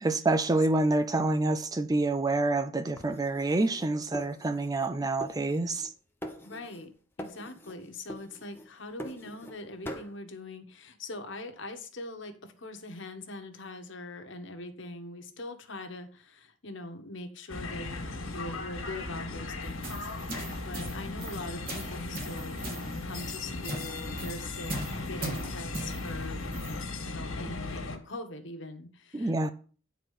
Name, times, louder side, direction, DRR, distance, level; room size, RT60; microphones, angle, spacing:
voice 1, 0.0-5.9 29.1-29.5, right 2 dB, 20° right, 0.4 m, -27 dB
sound 1, 3.0-4.9 5.2-5.9 6.2-6.9 7.2-7.8 8.1-9.6 9.9-10.1, equal, 10° left, 1.0 m, -43 dB
voice 2, 6.4-6.9 7.2-17.9 18.3-26.4 27.0-29.5, left 2 dB, 60° left, 1.3 m, -42 dB
sound 2, 17.5-28.0, left 2 dB, 85° left, 1.9 m, -37 dB
sound 3, 19.6-26.8, right 2 dB, 45° right, 2.6 m, -40 dB
9.4 x 4.5 x 6.5 m
head